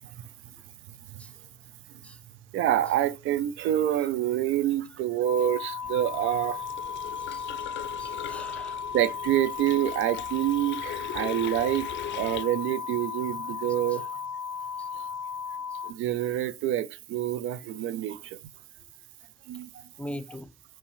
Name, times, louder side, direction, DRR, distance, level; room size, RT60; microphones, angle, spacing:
voice 1, 2.5-6.6 8.9-11.9 12.1-14.1 14.9-15.0 15.9-18.4 19.5-19.8, right 12 dB, 90° right, 0.5 m, -27 dB
sound 1, 5.2-15.9, left 6 dB, 65° right, 2.6 m, -35 dB
sound 2, 5.8-12.4, left 13 dB, 70° left, 0.4 m, -41 dB
voice 2, 7.3-7.7 8.0-8.8 14.8-14.9 15.8-15.9 20.0-20.5, equal, 5° left, 0.6 m, -41 dB
5.6 x 5.1 x 3.4 m
cardioid pair, 90°, 20 cm